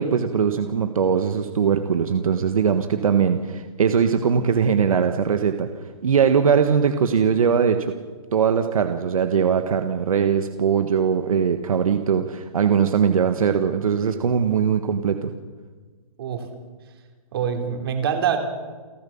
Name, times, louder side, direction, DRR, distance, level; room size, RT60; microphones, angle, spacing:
voice 1, 0.0-5.7 6.0-7.9 8.3-15.3, right 7 dB, 70° right, 7 dB, 1.6 m, -21 dB
voice 2, 16.2-16.5 17.3-18.4, right 8 dB, 40° right, 5 dB, 3.3 m, -24 dB
29.5 x 12.5 x 7.2 m, 1.4 s
hypercardioid pair, 170°, 19 cm